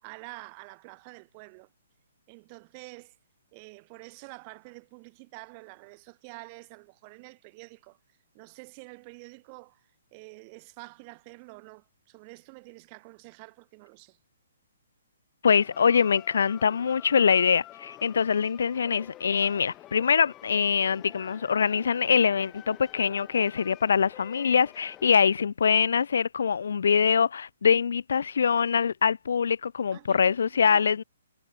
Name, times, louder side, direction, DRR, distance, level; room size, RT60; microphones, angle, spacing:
voice 1, 0.0-1.7 2.3-3.1 3.5-8.0 8.3-9.8 10.1-14.2 29.9-31.0, right 31 dB, 20° right, 3.4 m, -48 dB
voice 2, 15.4-31.0, left 6 dB, 60° left, 0.5 m, -24 dB
sound 1, 15.5-25.2, left 15 dB, 15° left, 1.2 m, -49 dB
hypercardioid pair, 180°, 0 cm